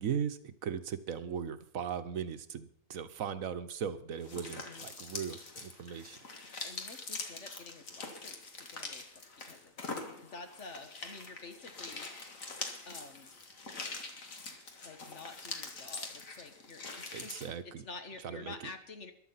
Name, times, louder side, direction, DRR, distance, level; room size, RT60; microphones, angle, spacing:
voice 1, 0.0-6.2 17.1-17.8 18.2-18.7, right 8 dB, 90° right, 11 dB, 1.4 m, -38 dB
sound 1, 4.2-17.5, left 3 dB, 80° left, 2.3 m, -44 dB
voice 2, 4.6-5.1 6.6-12.3 12.9-13.3 14.8-17.4 17.8-19.1, left 3 dB, 60° left, 7 dB, 1.9 m, -49 dB
14.5 x 11.5 x 5.7 m, 0.63 s
omnidirectional pair, 1.4 m